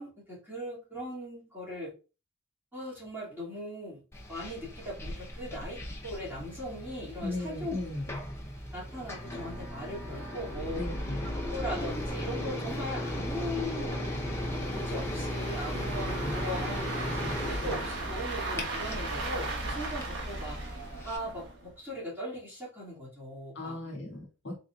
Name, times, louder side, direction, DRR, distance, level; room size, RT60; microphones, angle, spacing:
voice 1, 0.0-1.9 2.7-4.0 4.3-7.8 8.1-8.2 8.7-10.8 11.5-14.1 14.4-16.9 17.4-20.6 21.0-23.9, equal, 10° right, -7 dB, 2.0 m, -39 dB
sound 1, 4.1-21.2, left 1 dB, 15° left, 0.6 m, -37 dB
sound 2, 6.2-6.3 6.6-6.7 7.3-21.7, right 2 dB, 60° right, 1.0 m, -39 dB
voice 2, 7.2-8.2 10.8-11.3 16.2-16.4 23.5-24.6, left 2 dB, 60° left, -2 dB, 1.6 m, -36 dB
3.8 x 3.7 x 2.3 m, 0.33 s
head